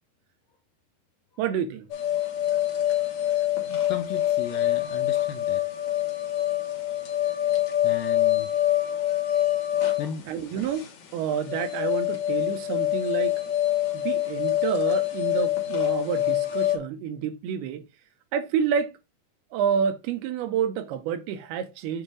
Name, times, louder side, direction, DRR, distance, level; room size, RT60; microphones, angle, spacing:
voice 1, 1.4-1.9 2.5-2.6 3.2-3.7 10.3-13.4 13.9-17.9 18.3-19.0 19.5-22.0, right 8 dB, 85° right, 2.7 m, -29 dB
sound 1, 1.9-16.8, left 12 dB, 60° left, 2.1 m, -25 dB
voice 2, 2.9-3.4 3.7-6.0 6.7-7.1 7.8-8.5 8.8-9.0 9.8-10.3, left 8 dB, 80° left, 2.1 m, -38 dB
7.6 x 2.7 x 4.9 m
omnidirectional pair, 4.5 m